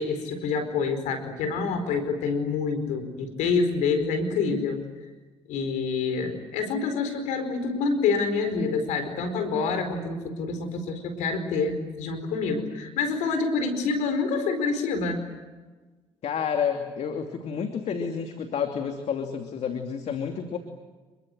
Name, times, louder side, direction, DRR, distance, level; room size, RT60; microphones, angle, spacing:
voice 1, 0.0-4.8 5.5-15.2, left 4 dB, 75° left, 8 dB, 4.8 m, -27 dB
voice 2, 16.2-20.6, left 7 dB, 60° left, 5 dB, 2.9 m, -30 dB
28.0 x 23.0 x 8.0 m, 1.3 s
hypercardioid pair, 55°, 12 cm